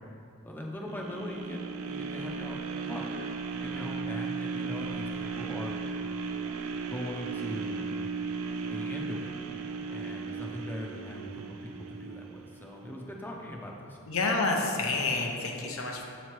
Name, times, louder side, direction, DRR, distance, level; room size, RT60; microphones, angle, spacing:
voice 1, 0.4-3.1 3.5-5.7 6.7-7.8 8.6-9.3 9.9-14.0, equal, 10° left, -1 dB, 0.5 m, -40 dB
sound 1, 0.9-13.0 13.5-13.6, right 5 dB, 85° right, 0.4 m, -36 dB
voice 2, 14.1-16.0, left 3 dB, 90° left, 1 dB, 0.7 m, -29 dB
7.0 x 3.1 x 4.4 m, 2.5 s
head